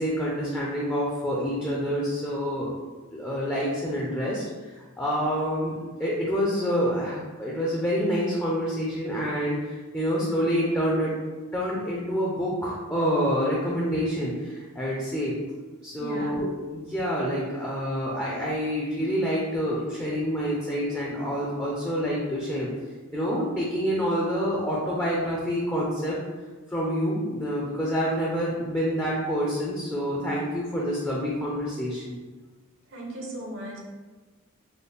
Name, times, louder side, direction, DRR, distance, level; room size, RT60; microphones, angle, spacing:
voice 1, 0.0-2.7 3.1-11.1 11.5-15.4 15.8-22.7 23.1-26.2 26.7-32.2, equal, 10° left, -5 dB, 0.5 m, -27 dB
voice 2, 16.0-16.4 32.9-33.8, right 1 dB, 60° right, -1 dB, 0.7 m, -36 dB
4.1 x 2.1 x 3.4 m, 1.3 s
head